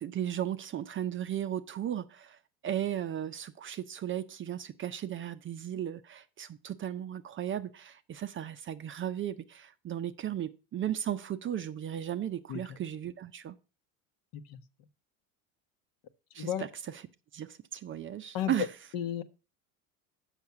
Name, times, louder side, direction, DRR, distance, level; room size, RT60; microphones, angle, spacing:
voice 1, 0.0-13.6 16.3-16.7 17.3-18.7, right 10 dB, 30° right, 0.6 m, -35 dB
voice 2, 12.5-12.8 14.3-14.6 16.4-16.6 18.3-18.5 18.9-19.2, left 10 dB, 55° left, 1.0 m, -34 dB
7.2 x 5.9 x 5.8 m
supercardioid pair, 100°, 42 cm